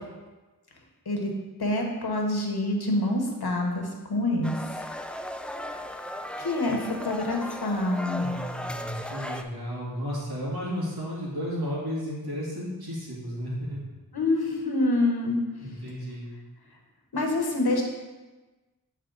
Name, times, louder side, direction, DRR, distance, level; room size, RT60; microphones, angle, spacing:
voice 1, 1.6-4.5 6.4-8.3 14.1-15.4 17.1-17.8, left 2 dB, 80° left, 1 dB, 1.1 m, -26 dB
sound 1, 4.4-9.4, left 1 dB, 5° left, 0.3 m, -36 dB
voice 2, 8.1-13.8 15.6-16.3, equal, 80° right, -6 dB, 2.1 m, -33 dB
8.5 x 4.1 x 3.9 m, 1.2 s
wide cardioid pair, 45°, 38 cm